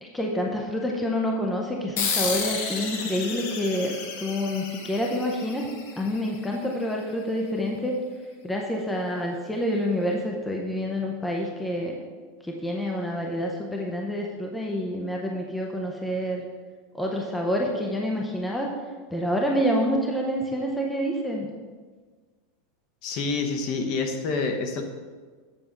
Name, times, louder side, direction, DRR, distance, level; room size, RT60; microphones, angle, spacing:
voice 1, 0.0-5.7 6.0-7.9 8.4-12.0 12.4-16.4 16.9-18.7 19.1-21.5, equal, 5° left, -1 dB, 0.6 m, -27 dB
sound 1, 2.0-6.9, left 5 dB, 65° left, 1.4 m, -32 dB
voice 2, 23.0-24.8, left 4 dB, 40° left, 4 dB, 1.0 m, -27 dB
7.7 x 4.9 x 5.9 m, 1.5 s
supercardioid pair, 165°, 0 cm